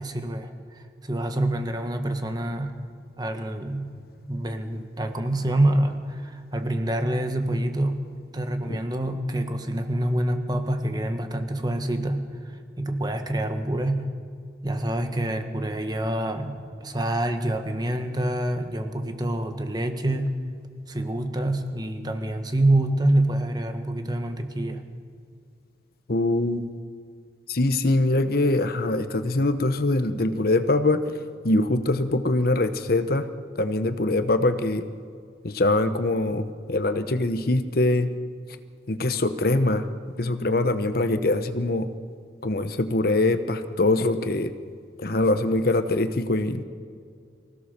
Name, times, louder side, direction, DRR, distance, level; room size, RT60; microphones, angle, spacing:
voice 1, 0.0-2.7 3.2-8.0 8.3-14.1 14.6-20.4 20.9-24.8, right 1 dB, 20° right, 6 dB, 1.5 m, -26 dB
voice 2, 26.1-26.7 27.5-31.0 31.4-33.3 33.5-34.8 35.4-38.1 38.9-39.9 40.2-41.9 42.4-44.5 45.0-46.6, left 2 dB, 55° left, 10 dB, 1.0 m, -23 dB
24.0 x 16.5 x 6.8 m, 2.2 s
head